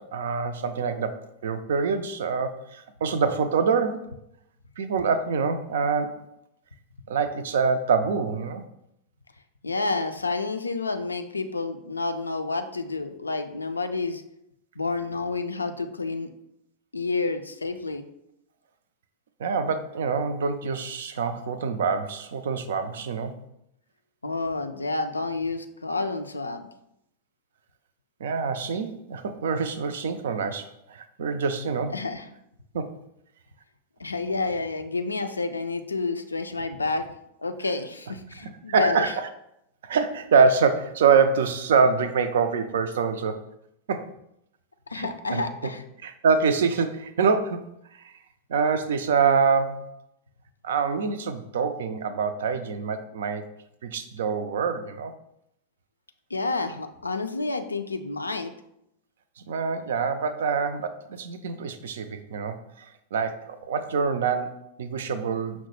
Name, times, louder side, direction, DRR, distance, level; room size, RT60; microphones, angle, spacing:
voice 1, 0.0-4.1 4.8-6.3 7.1-8.6 19.4-23.3 28.2-32.0 32.7-33.0 38.4-39.1 39.8-43.4 43.9-44.1 44.9-45.4 46.0-47.7 48.0-48.1 48.5-50.0 50.6-53.4 53.8-55.1 59.5-65.7, right 5 dB, 60° right, 10 dB, 0.3 m, -25 dB
voice 2, 9.6-14.2 14.8-16.3 16.9-18.0 24.2-26.7 31.9-32.3 34.0-37.1 37.4-39.1 44.9-45.8 56.3-58.5, left 3 dB, 80° left, 8 dB, 0.3 m, -29 dB
5.6 x 2.0 x 3.1 m, 0.79 s
figure-of-eight pair, 90°, 0 cm